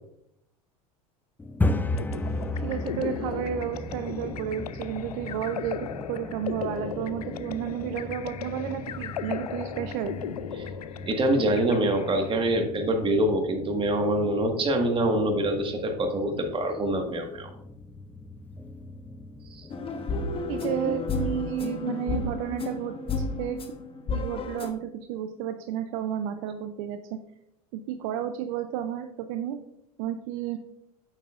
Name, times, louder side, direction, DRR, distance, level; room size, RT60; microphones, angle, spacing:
sound 1, 1.4-21.3, left 2 dB, 10° left, 0.5 m, -36 dB
sound 2, 2.0-12.4, left 9 dB, 90° left, 0.4 m, -37 dB
voice 1, 2.6-10.2 20.5-23.6 24.1-27.0 27.7-29.6 30.0-30.6, right 10 dB, 60° right, 8 dB, 0.6 m, -32 dB
voice 2, 11.1-17.5 19.5-19.6, right 1 dB, 25° right, 4 dB, 1.7 m, -25 dB
sound 3, 19.7-24.7, left 3 dB, 30° left, 1.0 m, -31 dB
8.7 x 7.3 x 2.5 m, 0.81 s
hypercardioid pair, 85°, 19 cm